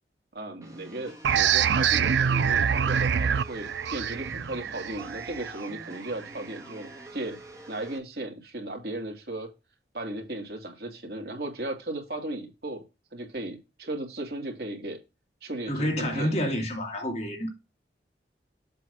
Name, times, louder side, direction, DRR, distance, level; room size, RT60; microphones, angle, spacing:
voice 1, 0.3-7.4 7.7-9.5 9.9-12.8 13.1-15.0 15.4-16.5, right 1 dB, 60° right, 2.5 m, -36 dB
sound 1, 0.6-8.0, right 1 dB, 20° right, 1.7 m, -47 dB
sound 2, 1.2-6.6, right 7 dB, 85° right, 0.5 m, -25 dB
voice 2, 15.7-17.5, equal, 40° left, 2.4 m, -28 dB
7.7 x 3.1 x 6.2 m
head